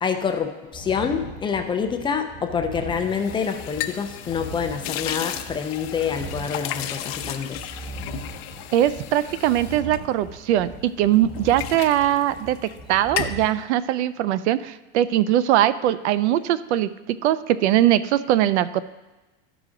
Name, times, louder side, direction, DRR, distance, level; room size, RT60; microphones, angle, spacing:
voice 1, 0.0-7.7, left 6 dB, 15° left, 6 dB, 0.4 m, -27 dB
sound 1, 0.7-13.5, right 2 dB, 15° right, 2.2 m, -39 dB
sound 2, 3.0-10.8 11.1-12.8 13.0-13.5, left 12 dB, 65° left, 0.6 m, -34 dB
voice 2, 8.7-16.9 17.2-18.8, right 12 dB, 80° right, 16 dB, 0.5 m, -21 dB
13.5 x 5.0 x 3.7 m, 1.1 s
supercardioid pair, 140°, 33 cm